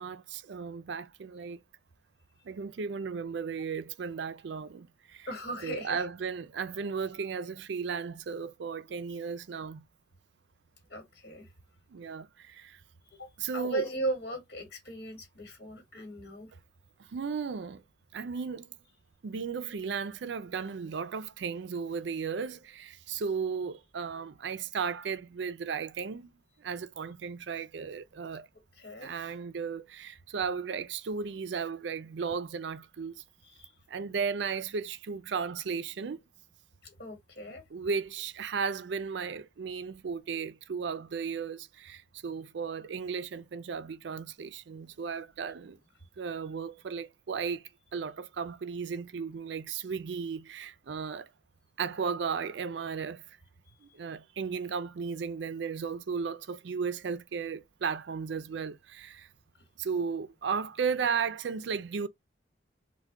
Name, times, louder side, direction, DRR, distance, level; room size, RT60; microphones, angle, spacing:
voice 1, 0.0-1.6 2.4-5.3 5.6-9.8 11.9-12.8 13.4-13.9 17.1-17.8 18.1-18.7 19.2-26.3 26.6-28.5 29.0-33.2 33.9-36.2 37.7-45.8 46.2-47.6 47.9-51.3 51.8-53.4 53.8-59.3 59.8-62.1, right 6 dB, 70° right, 0.4 m, -35 dB
voice 2, 5.3-6.0 10.9-11.4 13.2-16.5 28.8-29.1 33.4-33.7 36.8-37.6, right 2 dB, 55° left, 1.3 m, -37 dB
3.3 x 2.2 x 3.5 m
head